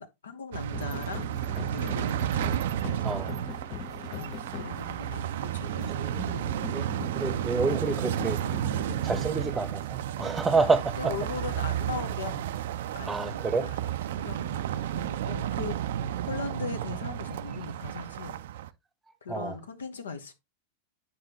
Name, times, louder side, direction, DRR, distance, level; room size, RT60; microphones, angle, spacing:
voice 1, 0.0-1.3 1.7-2.5 2.8-3.2 4.1-6.8 10.6-10.7 11.0-15.8 16.2-18.4 19.2-20.3, left 5 dB, 70° left, 1.0 m, -40 dB
sound 1, 0.5-18.7, right 11 dB, 55° right, 0.4 m, -32 dB
sound 2, 0.7-9.3, left 10 dB, 35° left, 0.7 m, -42 dB
voice 2, 5.9-6.2 6.7-6.8 7.1-8.4 9.0-11.1 13.0-13.7 19.3-19.6, right 4 dB, 10° right, 0.9 m, -28 dB
9.3 x 5.5 x 2.9 m
figure-of-eight pair, 90°, 0 cm